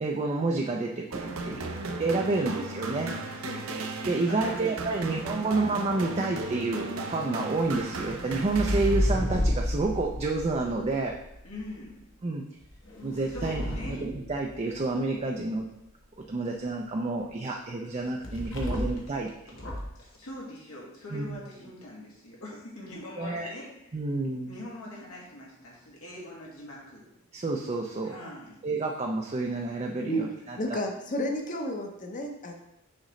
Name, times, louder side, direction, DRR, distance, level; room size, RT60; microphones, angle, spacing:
voice 1, 0.0-1.7 2.0-3.1 4.1-11.1 12.2-12.4 13.0-15.7 16.3-19.3 21.1-21.3 23.2-23.5 23.9-24.5 27.3-28.2 28.6-30.8, right 3 dB, 30° right, 1 dB, 0.4 m, -29 dB
sound 1, 1.1-9.4, right 2 dB, 70° right, 0.7 m, -36 dB
voice 2, 3.4-3.8 4.3-5.5 11.4-12.0 13.3-14.0 18.7-18.8 19.6-19.7 20.0-24.0 24.5-27.0 28.0-28.6, left 1 dB, 90° left, -4 dB, 2.0 m, -43 dB
Balloon pulling over radiator, 7.6-11.7 12.6-14.9 18.2-19.1 19.5-20.0, left 1 dB, 60° left, 1.2 m, -31 dB
voice 3, 30.6-32.5, equal, 35° left, 3 dB, 0.8 m, -31 dB
6.4 x 5.2 x 3.1 m, 0.85 s
head